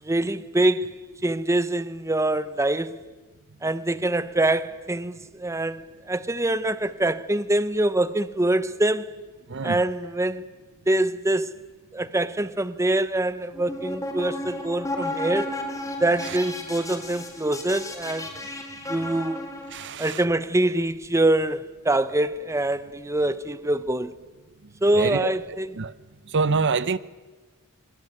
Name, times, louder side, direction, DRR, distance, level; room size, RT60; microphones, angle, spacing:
voice 1, 0.0-0.9 1.2-3.0 3.6-9.1 9.6-10.5 10.9-11.5 11.9-15.5 16.0-18.3 18.9-19.4 20.0-24.1 24.8-25.7, right 1 dB, 15° right, 0.8 m, -24 dB
voice 2, 9.5-9.8 16.2-16.4 19.7-20.2 24.9-25.3 25.8-25.9 26.3-27.0, right 4 dB, 55° right, 0.8 m, -26 dB
sound 1, 13.5-19.9, left 1 dB, 15° left, 4.8 m, -33 dB
24.0 x 23.5 x 9.5 m
head